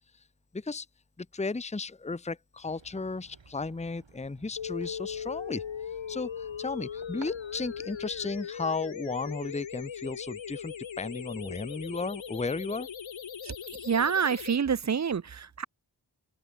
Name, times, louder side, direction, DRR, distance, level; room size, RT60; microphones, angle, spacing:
voice 1, 0.5-0.9 1.2-5.6 6.1-12.9, left 3 dB, 15° left, 0.8 m, -34 dB
sound 1, 2.6-8.4, right 5 dB, 85° right, 3.7 m, -54 dB
sound 2, 4.6-14.6, left 8 dB, 85° left, 1.0 m, -39 dB
voice 2, 13.8-15.6, right 6 dB, 40° right, 0.5 m, -27 dB
wide cardioid pair, 60°, 45 cm